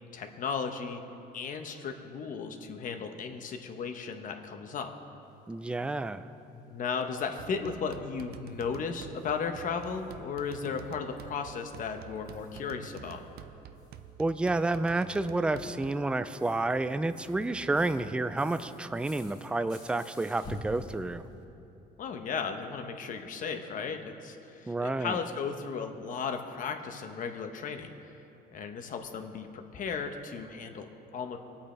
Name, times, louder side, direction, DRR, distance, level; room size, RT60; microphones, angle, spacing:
voice 1, 0.1-1.0 1.3-4.9 6.5-13.2 22.0-28.1 28.5-31.4, left 5 dB, 50° left, 6 dB, 1.0 m, -35 dB
sound 1, 5.4-5.7 6.0-6.1 6.4-6.5 6.8-6.9 7.2-7.4 7.7-7.8 8.3-13.4 13.7-21.5, left 1 dB, 25° left, 2.1 m, -51 dB
voice 2, 5.5-6.3 14.2-21.2 24.7-25.2, right 2 dB, 5° right, 12 dB, 0.4 m, -30 dB
sound 2, 7.4-16.1, right 9 dB, 70° right, 0.6 m, -49 dB
sound 3, 10.3-20.0, left 2 dB, 30° right, 2.1 m, -57 dB
21.0 x 8.6 x 3.4 m, 2.9 s
cardioid pair, 110°, 17 cm